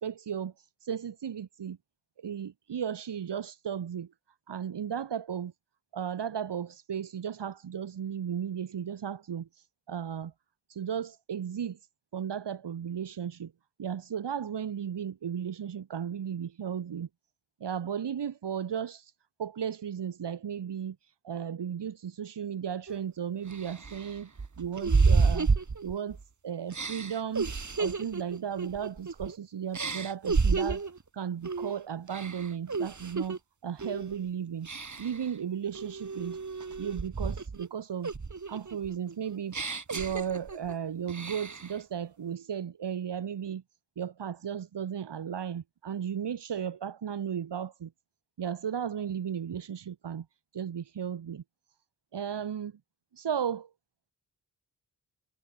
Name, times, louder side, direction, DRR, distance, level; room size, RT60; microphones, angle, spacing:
voice 1, 0.0-1.8 2.2-4.1 4.5-5.5 5.9-10.3 10.7-11.8 12.1-13.5 13.8-17.1 17.6-19.1 19.4-24.3 24.6-25.5 25.8-26.2 26.4-27.5 27.8-34.7 35.0-36.4 36.8-38.1 38.5-39.6 39.9-43.6 44.0-47.9 48.4-50.3 50.5-51.4 52.1-52.8 53.1-53.7, right 8 dB, 85° right, 4.7 m, -35 dB
sound 1, 22.9-23.0 23.5-26.2 26.7-29.4 29.7-31.0 31.4-31.7 32.1-33.4 33.8-34.1 34.6-35.2 35.7-37.7 38.0-40.7 41.1-41.7, right 4 dB, 45° right, 4.6 m, -30 dB
cardioid pair, 60°, 40 cm